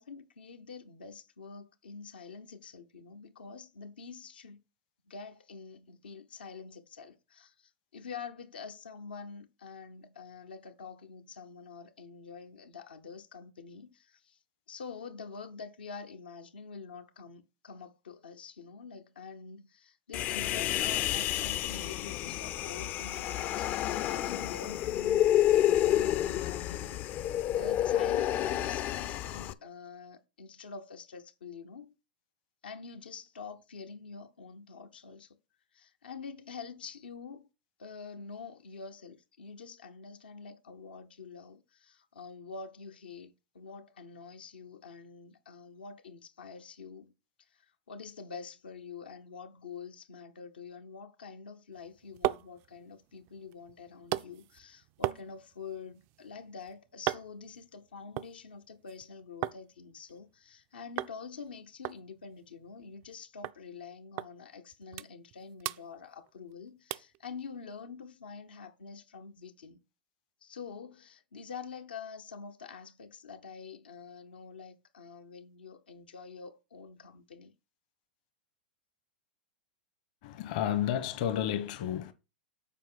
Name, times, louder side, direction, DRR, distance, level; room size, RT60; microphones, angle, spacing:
voice 1, 0.0-4.6 5.1-14.4 14.7-25.2 25.5-31.9 32.6-35.4 35.7-37.5 37.8-47.1 47.5-69.8 70.4-77.5, left 5 dB, 85° left, 1.0 m, -46 dB
Human voice, 20.1-29.5, left 12 dB, 35° left, 0.5 m, -29 dB
sound 1, 51.7-59.6 59.9-60.6 61.0-61.2 61.4-61.5 61.8-63.2 63.4-63.6 64.2-64.3 64.7-65.3 65.6-66.5 66.9-67.2 67.7-67.8, right 16 dB, 45° right, 0.4 m, -38 dB
voice 2, 80.2-82.1, left 10 dB, 55° left, 1.0 m, -31 dB
7.4 x 4.6 x 5.6 m
hypercardioid pair, 115°, 5 cm